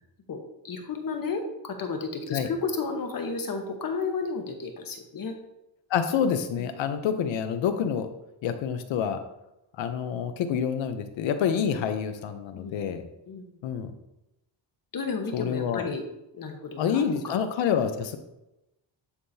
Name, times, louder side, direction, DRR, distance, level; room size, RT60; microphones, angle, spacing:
voice 1, 0.3-5.4 6.5-6.7 12.5-12.7 13.3-13.6 14.9-16.0 16.3-17.4, left 4 dB, 50° left, 4 dB, 1.1 m, -33 dB
voice 2, 5.9-8.1 8.4-9.2 9.8-13.0 13.6-13.9 15.3-15.8 16.8-18.2, left 7 dB, 85° left, 8 dB, 0.8 m, -27 dB
9.6 x 3.8 x 2.8 m, 0.91 s
cardioid pair, 95°, 45 cm